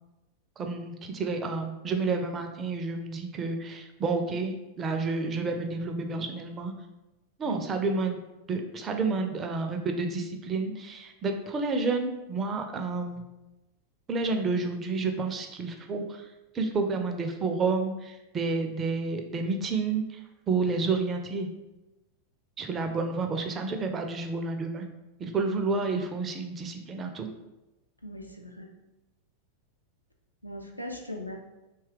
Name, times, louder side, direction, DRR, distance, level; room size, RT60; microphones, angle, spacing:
voice 1, 0.6-6.7 7.4-8.2 8.5-13.2 14.1-16.3 16.5-20.2 20.5-21.5 22.6-24.8 25.2-27.3, right 3 dB, 25° right, 5 dB, 0.4 m, -30 dB
voice 2, 28.0-28.7 30.4-31.4, left 1 dB, 85° left, 2 dB, 0.4 m, -39 dB
2.8 x 2.3 x 3.2 m, 1.0 s
figure-of-eight pair, 90°, 0 cm